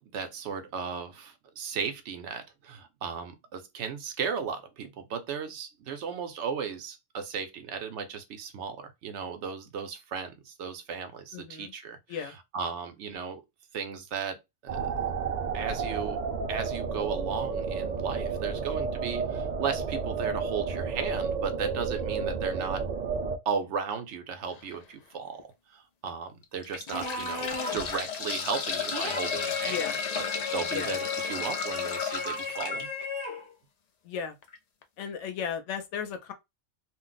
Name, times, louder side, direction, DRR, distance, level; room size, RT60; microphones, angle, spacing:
voice 1, 0.0-13.4 13.7-14.9 15.5-16.2 16.5-22.8 23.5-29.8 30.1-30.2 30.5-32.9, right 6 dB, 85° right, 0.9 m, -35 dB
voice 2, 11.3-11.7 12.1-12.3 29.7-30.0 30.7-30.9 34.0-34.3 35.0-36.3, left 7 dB, 80° left, 0.9 m, -35 dB
sound 1, 14.7-23.4, right 5 dB, 50° right, 0.5 m, -31 dB
sound 2, 24.5-24.8 25.4-25.5 26.4-32.8 34.4-34.6 34.8-34.9, left 6 dB, 60° left, 0.4 m, -34 dB
sound 3, 26.9-28.0 28.9-33.5, left 4 dB, 30° left, 0.9 m, -35 dB
2.4 x 2.1 x 3.8 m
omnidirectional pair, 1.2 m